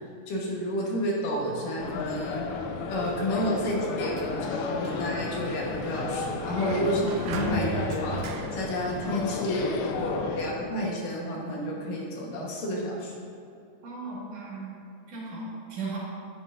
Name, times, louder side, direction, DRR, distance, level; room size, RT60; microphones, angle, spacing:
voice 1, 0.3-2.4 2.9-8.2 8.5-13.1, equal, 65° left, -2 dB, 2.8 m, -30 dB
sound 1, 1.8-10.5, left 5 dB, 90° left, 2.6 m, -33 dB
Sliding door, 3.9-9.5, right 5 dB, 80° right, 2.0 m, -38 dB
voice 2, 13.8-14.8 15.1-16.0, right 3 dB, 60° right, -6 dB, 3.2 m, -36 dB
9.7 x 9.5 x 2.6 m, 2.4 s
omnidirectional pair, 4.3 m